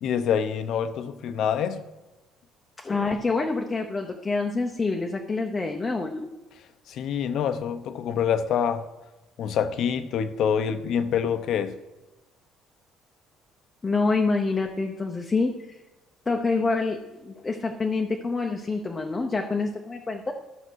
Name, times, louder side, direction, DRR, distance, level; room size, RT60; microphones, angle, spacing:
voice 1, 0.0-1.8 6.9-8.8 9.4-11.8, left 8 dB, 55° left, 11 dB, 0.7 m, -26 dB
voice 2, 2.8-6.3 13.8-15.8 16.3-20.3, left 3 dB, 15° left, 2 dB, 0.7 m, -27 dB
12.5 x 5.9 x 6.3 m, 1.1 s
cardioid pair, 165°, 0 cm